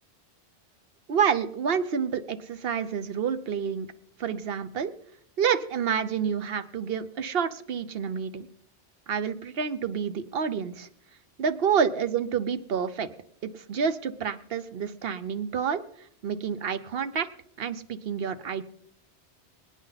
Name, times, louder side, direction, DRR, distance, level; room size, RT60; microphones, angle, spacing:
voice 1, 1.1-3.9 4.2-4.9 5.4-8.5 9.1-10.9 11.4-13.1 13.4-15.8 16.2-17.3 17.6-18.6, right 7 dB, 60° right, 12 dB, 0.9 m, -28 dB
24.5 x 9.1 x 4.0 m, 0.69 s
omnidirectional pair, 1.2 m